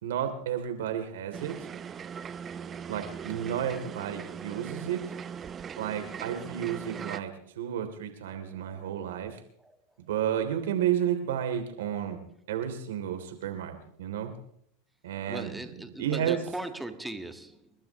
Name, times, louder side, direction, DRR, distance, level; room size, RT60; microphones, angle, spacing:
voice 1, 0.0-1.6 2.9-5.0 5.8-7.3 7.6-9.4 10.1-12.2 12.5-14.3 15.0-15.5 16.0-16.4, right 10 dB, 80° right, 5 dB, 3.1 m, -31 dB
sound 1, 1.3-7.2, right 7 dB, 30° right, 0.7 m, -40 dB
voice 2, 8.3-9.2 9.6-9.8 15.3-17.7, right 2 dB, 5° right, 7 dB, 1.6 m, -40 dB
30.0 x 12.0 x 3.1 m, 0.70 s
hypercardioid pair, 100°, 0 cm